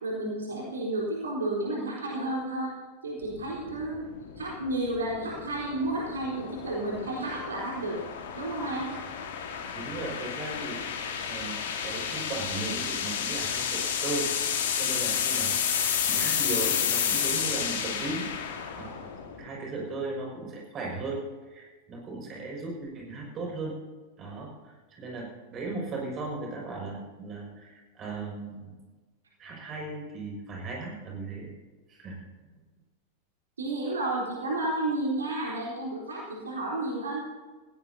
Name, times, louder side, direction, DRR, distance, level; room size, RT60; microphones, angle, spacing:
voice 1, 0.0-2.8 3.0-4.1 4.4-8.0 8.4-8.9 33.6-37.2, right 2 dB, 70° right, -3 dB, 3.9 m, -31 dB
sound 1, 3.2-19.5, left 8 dB, 60° left, 1.8 m, -31 dB
voice 2, 9.7-14.3 14.7-15.6 16.0-18.3 18.7-19.0 19.4-21.2 21.5-23.7 24.2-28.7 29.4-31.5 31.9-32.3, right 3 dB, 30° right, -2 dB, 6.0 m, -37 dB
19.5 x 17.0 x 2.8 m, 1.3 s
figure-of-eight pair, 90°, 0 cm